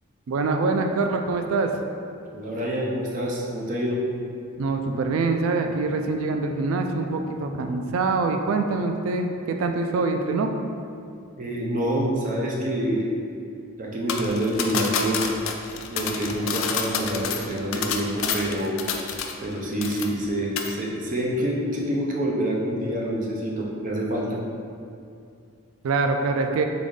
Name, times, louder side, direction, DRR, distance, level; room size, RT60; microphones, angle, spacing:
voice 1, 0.3-1.7 4.6-10.5 25.8-26.6, right 3 dB, 70° right, 5 dB, 0.3 m, -24 dB
voice 2, 2.3-4.0 11.4-13.1 13.8-15.2 15.9-18.8 19.4-24.4, right 1 dB, 40° right, -2 dB, 0.6 m, -27 dB
sound 1, 14.1-19.5 19.8-20.3 20.6-20.7, left 6 dB, 65° left, 0.4 m, -29 dB
3.9 x 3.6 x 3.6 m, 2.4 s
head